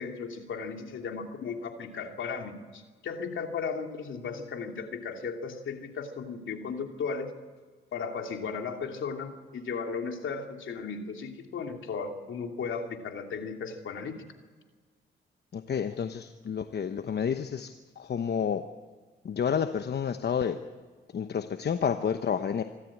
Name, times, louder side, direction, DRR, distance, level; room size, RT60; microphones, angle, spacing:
voice 1, 0.0-7.3 7.9-14.2, left 5 dB, 70° left, 4 dB, 2.9 m, -36 dB
voice 2, 15.5-18.7 19.2-20.6 21.1-22.6, left 7 dB, 55° left, 9 dB, 1.0 m, -30 dB
26.0 x 13.0 x 8.7 m, 1.5 s
cardioid pair, 65°, 21 cm